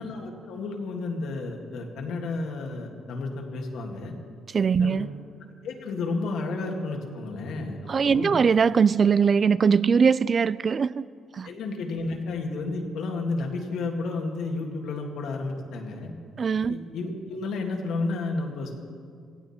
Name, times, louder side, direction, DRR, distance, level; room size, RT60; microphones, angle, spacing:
voice 1, 0.0-4.1 4.8-5.0 5.6-8.4 11.4-16.1 16.7-18.7, left 3 dB, 80° left, 2.0 m, -32 dB
voice 2, 4.5-5.2 7.9-11.1 11.3-11.5 16.4-16.8, right 6 dB, 45° right, 0.3 m, -21 dB
16.5 x 16.5 x 4.3 m
cardioid pair, 90°, 0 cm